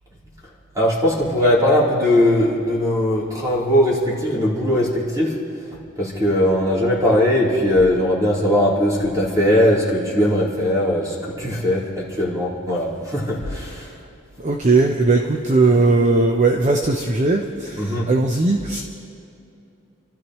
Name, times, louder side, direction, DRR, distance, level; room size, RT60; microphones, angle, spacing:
voice 1, 0.8-5.4 6.0-13.9 15.7-15.8 17.7-18.1, left 1 dB, 15° right, -6 dB, 3.6 m, -19 dB
voice 2, 14.4-18.8, right 3 dB, 35° right, 3 dB, 0.8 m, -18 dB
29.0 x 13.0 x 3.1 m, 2.7 s
head